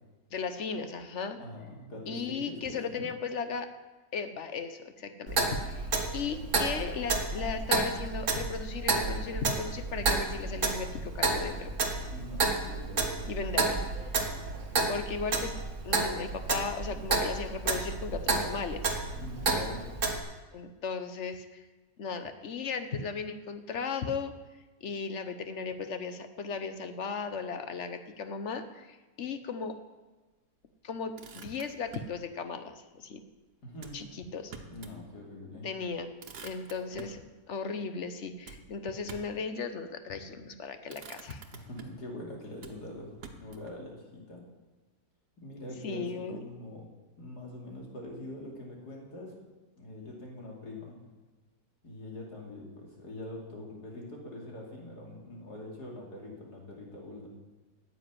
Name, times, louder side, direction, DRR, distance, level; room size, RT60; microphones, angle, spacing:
voice 1, 0.3-1.4 2.1-3.7 4.1-11.7 13.3-13.8 14.9-15.5 15.8-18.9 20.5-21.6 22.0-24.3 24.8-29.8 30.8-33.2 33.9-34.5 35.6-36.1 36.4-41.4 45.8-46.4, left 5 dB, 55° left, 9 dB, 1.1 m, -36 dB
voice 2, 1.4-3.1 12.1-13.3 19.2-19.9 33.6-34.0 34.7-35.7 41.5-44.5 45.4-46.9 47.2-49.4 49.7-51.0 51.8-57.3, left 1 dB, 85° left, -1 dB, 3.2 m, -43 dB
Clock, 5.3-20.2, right 3 dB, 50° right, 1.8 m, -31 dB
Motor vehicle (road), 30.9-32.2 33.8-35.0 35.4-35.5 35.8-37.2 38.4-39.4 40.3-40.5 40.9-42.1 42.6-43.8, right 5 dB, 90° right, 1.6 m, -49 dB
9.7 x 7.9 x 9.6 m, 1.2 s
omnidirectional pair, 1.7 m